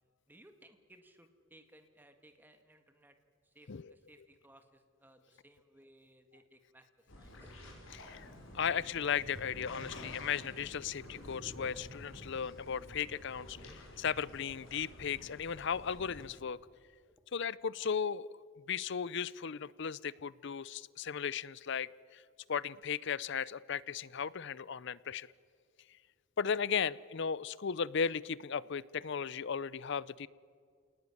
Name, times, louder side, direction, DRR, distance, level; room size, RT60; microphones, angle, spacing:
voice 1, 0.3-3.2 3.4-7.5, right 1 dB, 10° right, 6 dB, 1.8 m, -62 dB
sound 1, 7.1-16.3, left 1 dB, 75° left, 5.5 m, -50 dB
voice 2, 7.9-8.3 8.5-16.6 17.3-18.3 18.7-22.2 22.5-25.3 26.4-30.3, left 7 dB, 60° left, 21 dB, 0.6 m, -36 dB
28.5 x 19.0 x 9.7 m, 2.1 s
head